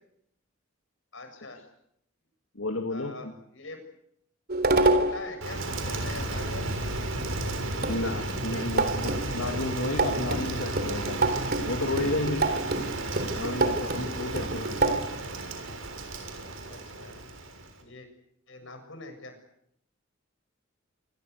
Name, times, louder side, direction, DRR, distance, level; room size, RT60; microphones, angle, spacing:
voice 1, 1.1-1.6 2.9-3.8 4.9-6.7 14.3-14.6 16.4-17.3 17.8-18.1 18.5-19.4, left 2 dB, 70° left, 7 dB, 7.4 m, -44 dB
voice 2, 2.5-3.3 7.8-11.2 11.7-12.5 13.3-14.8, left 2 dB, 90° left, 4 dB, 2.5 m, -32 dB
sound 1, 4.5-5.3 7.3-7.4 7.8-15.1, right 2 dB, 50° right, 3.6 m, -27 dB
Rain, 5.4-17.8, right 2 dB, 85° right, 6.7 m, -33 dB
28.0 x 23.0 x 8.2 m, 0.74 s
head